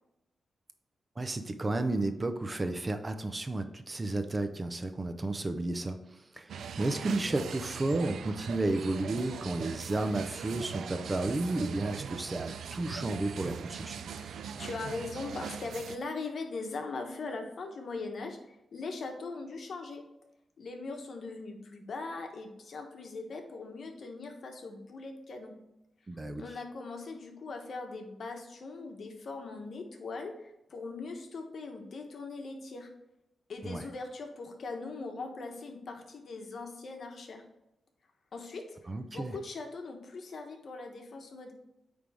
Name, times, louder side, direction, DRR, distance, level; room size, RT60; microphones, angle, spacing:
voice 1, 1.2-14.0 26.1-26.5 33.6-33.8 38.9-39.3, right 2 dB, 25° right, 8 dB, 0.5 m, -32 dB
sound 1, 6.5-16.0, right 7 dB, 90° right, 0.4 m, -41 dB
voice 2, 14.2-18.4 18.7-20.0 20.6-25.5 26.4-32.9 33.5-37.4 38.3-41.5, left 3 dB, 60° left, 3 dB, 1.2 m, -40 dB
8.9 x 3.4 x 3.5 m, 0.88 s
wide cardioid pair, 115°, 0 cm